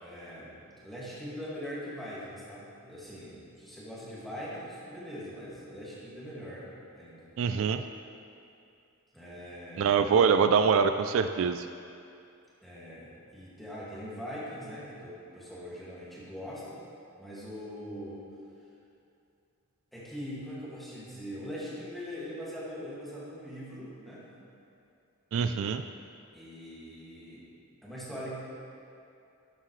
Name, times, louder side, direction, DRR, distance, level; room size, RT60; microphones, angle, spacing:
voice 1, 0.0-6.7 6.9-7.3 9.1-10.0 12.6-16.8 17.2-18.2 19.9-24.3 26.3-27.5 27.8-28.3, equal, ahead, -9 dB, 2.0 m, -42 dB
voice 2, 7.4-7.8 9.8-11.7 25.3-25.8, right 6 dB, 65° right, 9 dB, 0.3 m, -24 dB
12.0 x 7.5 x 3.2 m, 2.6 s
head